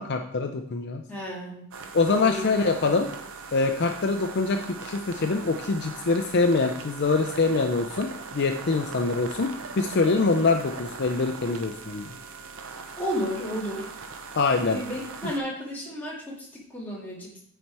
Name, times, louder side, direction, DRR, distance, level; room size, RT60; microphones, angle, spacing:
voice 1, 0.0-1.0 1.9-3.1 3.5-9.5 9.8-12.1 14.4-14.8 15.2-15.3, left 3 dB, 50° left, 5 dB, 0.5 m, -24 dB
voice 2, 1.1-1.7 2.1-2.6 13.0-13.9 14.7-17.4, equal, 10° left, -5 dB, 2.3 m, -33 dB
sound 1, 1.7-15.4, right 4 dB, 65° right, 0.7 m, -40 dB
9.3 x 4.2 x 4.7 m, 0.70 s
head